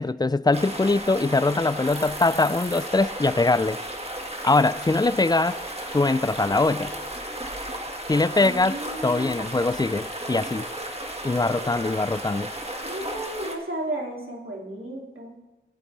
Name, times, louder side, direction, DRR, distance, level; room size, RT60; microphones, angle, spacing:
voice 1, 0.0-3.8 4.4-5.6 5.9-6.9 8.1-8.8 9.0-10.7 11.2-12.5, left 3 dB, 20° left, 0.4 m, -22 dB
sound 1, 0.5-13.6, right 1 dB, 30° right, 1.7 m, -34 dB
sound 2, 1.8-3.0 3.3-3.4 3.8-3.9 4.1-7.3 8.1-11.3, right 1 dB, 50° right, 3.2 m, -48 dB
voice 2, 8.3-9.5 11.5-11.7 12.8-15.4, right 1 dB, 85° right, 2.8 m, -34 dB
23.0 x 8.4 x 3.3 m
wide cardioid pair, 45°, 21 cm